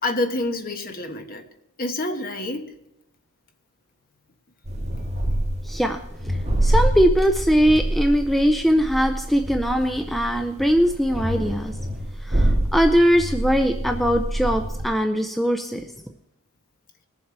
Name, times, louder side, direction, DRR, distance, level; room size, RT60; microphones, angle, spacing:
voice 1, 0.0-1.4 1.8-2.7, left 2 dB, 40° left, 5 dB, 1.2 m, -27 dB
sound 1, 4.6-14.9, right 1 dB, 30° right, 1.8 m, -26 dB
voice 2, 5.6-11.8 12.2-15.9, equal, ahead, 5 dB, 0.5 m, -21 dB
20.5 x 7.3 x 4.6 m, 0.85 s
head